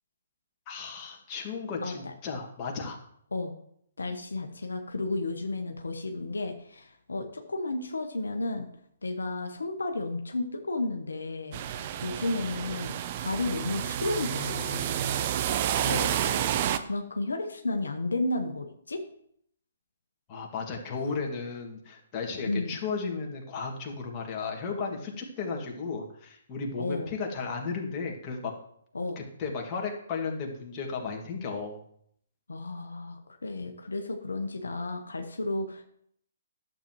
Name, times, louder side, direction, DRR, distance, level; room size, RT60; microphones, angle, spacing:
voice 1, 0.7-3.0 20.3-28.5 29.2-31.8, left 4 dB, 30° left, -1 dB, 2.1 m, -34 dB
voice 2, 1.8-2.1 3.3-3.5 4.0-8.7 9.0-11.6 12.0-14.9 15.8-16.2 16.8-19.0 22.5-22.8 26.8-27.1 28.9-29.2 32.5-35.8, left 2 dB, 85° left, 5 dB, 1.0 m, -32 dB
sound 1, 11.5-16.8, right 10 dB, 40° right, 0.6 m, -30 dB
11.5 x 7.5 x 3.1 m, 0.68 s
hypercardioid pair, 135°, 0 cm